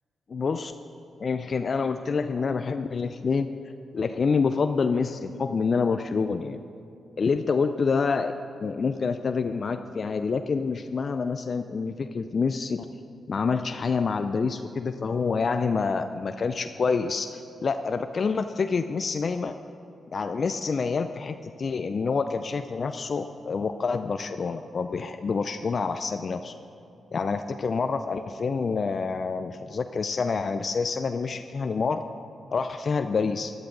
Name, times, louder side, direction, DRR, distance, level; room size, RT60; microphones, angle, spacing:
voice 1, 0.3-0.7 1.2-3.5 3.9-6.6 7.2-8.3 8.6-12.9 13.3-19.6 20.1-26.5 27.1-32.0 32.5-33.5, left 5 dB, 55° left, 9 dB, 0.4 m, -27 dB
13.0 x 11.0 x 3.9 m, 2.7 s
supercardioid pair, 45°, 0 cm